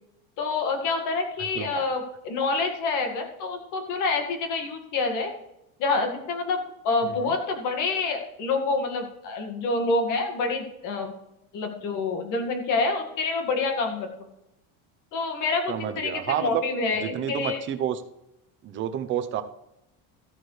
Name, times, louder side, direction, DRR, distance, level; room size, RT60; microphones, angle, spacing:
voice 1, 0.4-5.3 5.8-11.1 11.5-14.1 15.1-17.6, left 3 dB, 45° left, 4 dB, 2.0 m, -27 dB
voice 2, 1.5-1.8 7.0-7.3 15.7-16.6 16.9-18.0 18.6-19.4, right 10 dB, 30° right, 9 dB, 0.7 m, -29 dB
14.5 x 8.6 x 3.3 m, 0.86 s
cardioid pair, 180°, 43 cm